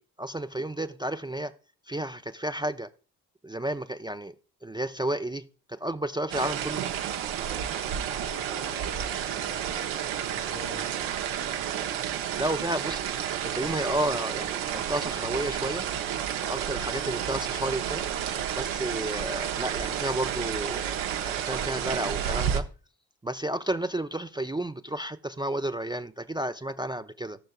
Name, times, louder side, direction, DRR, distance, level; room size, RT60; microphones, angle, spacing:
voice 1, 0.0-1.5 1.9-2.9 3.4-4.3 4.6-6.9 12.4-15.8 16.4-18.0 18.5-22.6 23.2-27.4, right 1 dB, 10° right, 0.5 m, -32 dB
sound 1, 6.3-22.6, right 9 dB, 75° right, 1.0 m, -31 dB
voice 2, 7.9-9.7 10.3-10.8, left 1 dB, 90° left, 5.8 m, -45 dB
17.5 x 6.3 x 2.3 m
hypercardioid pair, 45°, 47 cm